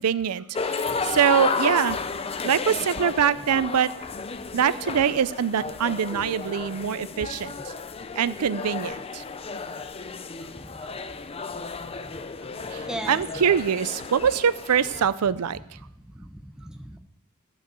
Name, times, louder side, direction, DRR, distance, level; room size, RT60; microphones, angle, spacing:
voice 1, 0.0-2.0 2.4-3.9 4.5-7.5 8.2-9.2 12.7-15.6, right 8 dB, 90° right, 17 dB, 0.5 m, -24 dB
sound 1, 0.5-15.0, left 4 dB, 25° left, 0.5 m, -33 dB
voice 2, 12.8-13.2 16.1-17.0, equal, 5° right, 6 dB, 0.9 m, -37 dB
14.5 x 5.6 x 7.5 m, 0.82 s
head